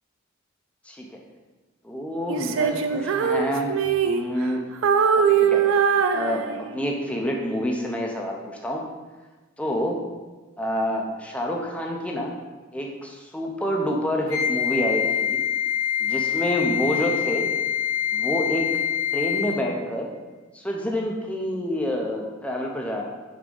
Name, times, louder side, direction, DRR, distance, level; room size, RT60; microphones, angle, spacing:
voice 1, 0.9-1.2 1.8-3.7 4.1-4.6 5.1-5.8 6.1-8.8 9.6-10.0 10.6-12.3 12.7-15.4 16.0-17.5 18.1-18.7 19.1-20.1 20.5-23.0, equal, 5° left, -1 dB, 0.6 m, -28 dB
Female singing, 2.3-4.5 4.8-6.9, right 7 dB, 70° right, 0.4 m, -22 dB
Wind instrument woodwind instrument, 14.3-19.7, left 8 dB, 75° left, 0.9 m, -25 dB
5.2 x 3.6 x 5.1 m, 1.3 s
head